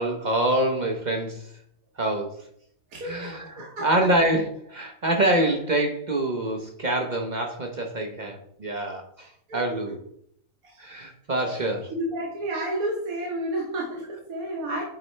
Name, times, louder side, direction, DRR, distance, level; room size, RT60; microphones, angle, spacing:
voice 1, 0.0-1.5 2.0-2.5 3.0-10.0 10.8-11.9, right 1 dB, 40° right, 3 dB, 0.7 m, -26 dB
voice 2, 2.9-3.9 9.5-9.8 10.6-10.8 11.4-14.8, right 1 dB, 75° right, -2 dB, 1.6 m, -31 dB
8.4 x 4.1 x 3.2 m, 0.67 s
omnidirectional pair, 1.5 m